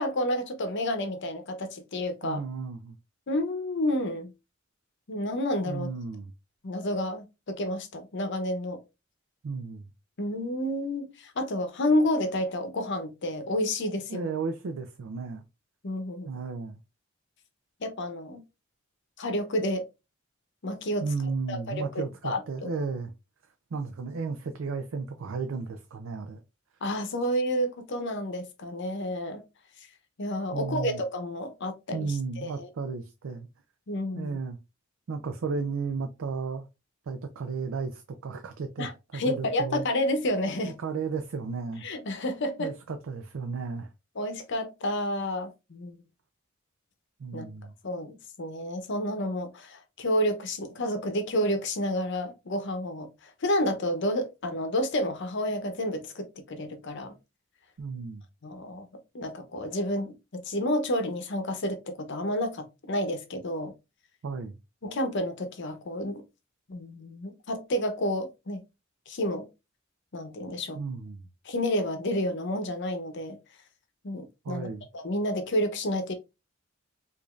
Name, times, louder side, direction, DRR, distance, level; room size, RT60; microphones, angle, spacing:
voice 1, 0.0-2.4 3.3-4.3 5.1-5.9 6.6-8.8 10.2-14.3 15.8-16.3 17.8-18.4 19.2-19.8 20.6-21.1 21.5-22.7 26.8-29.4 30.2-32.7 33.9-34.4 38.8-40.8 41.8-42.7 44.2-46.0 47.3-47.4 47.8-57.2 58.4-58.9 59.1-63.7 64.8-66.2 66.7-68.6 69.1-69.5 70.1-70.8 71.4-73.4 74.0-74.7 74.9-76.1, left 1 dB, 60° left, 0.7 m, -30 dB
voice 2, 2.2-3.0 5.6-6.3 9.4-9.9 14.1-15.4 16.2-16.8 21.0-23.1 23.7-26.4 30.5-31.0 31.9-33.5 34.1-34.6 35.1-36.7 37.1-39.8 40.6-41.8 42.6-43.9 47.2-47.7 57.8-58.2 64.2-64.5 70.8-71.2 74.4-74.9, right 4 dB, 70° right, 0.4 m, -34 dB
4.9 x 2.6 x 2.4 m
head